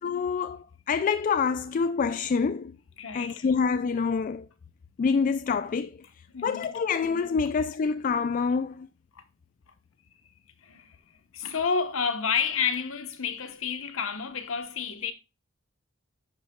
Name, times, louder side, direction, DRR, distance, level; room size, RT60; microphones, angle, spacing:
voice 1, 0.0-2.8 3.1-4.5 5.0-5.9 6.4-8.9, left 5 dB, 40° left, 0.3 m, -26 dB
voice 2, 3.0-3.5 6.3-6.7 9.1-9.2 10.6-11.0 11.3-15.1, left 6 dB, 75° left, 1.1 m, -30 dB
10.5 x 5.7 x 2.3 m
head